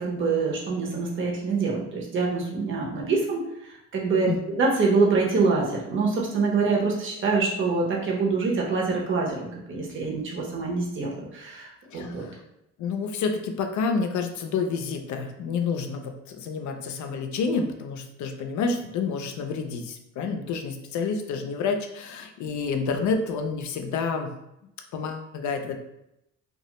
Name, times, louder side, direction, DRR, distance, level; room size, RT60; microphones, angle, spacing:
voice 1, 0.0-12.2, right 4 dB, 40° right, -2 dB, 0.7 m, -25 dB
voice 2, 11.9-12.4 12.8-24.3 24.9-25.8, left 5 dB, 75° left, 5 dB, 0.4 m, -29 dB
2.2 x 2.0 x 2.9 m, 0.85 s
cardioid pair, 90°, 30 cm